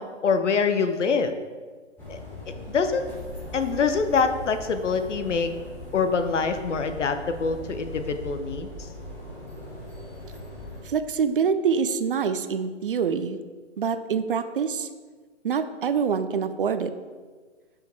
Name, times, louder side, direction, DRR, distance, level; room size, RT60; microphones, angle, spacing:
voice 1, 0.0-1.3 2.1-2.2 2.7-3.1 3.5-5.5 5.9-8.7, left 5 dB, 75° left, 9 dB, 0.7 m, -25 dB
sound 1, 2.0-10.8, left 1 dB, 5° left, 1.2 m, -40 dB
voice 2, 10.8-13.4 13.8-14.9 15.4-16.9, right 6 dB, 50° right, 10 dB, 0.4 m, -25 dB
5.2 x 4.8 x 4.5 m, 1.4 s
figure-of-eight pair, 130°, 37 cm